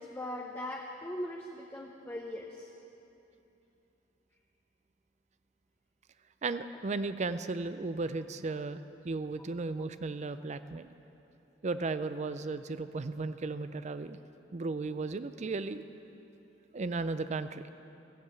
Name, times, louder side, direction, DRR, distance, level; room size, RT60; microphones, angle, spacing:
voice 1, 0.0-2.7, left 1 dB, 10° left, 0 dB, 0.7 m, -40 dB
voice 2, 6.4-10.9 11.6-14.2 14.5-15.8 16.7-17.7, right 3 dB, 40° right, 12 dB, 0.4 m, -35 dB
15.0 x 7.6 x 8.1 m, 2.9 s
head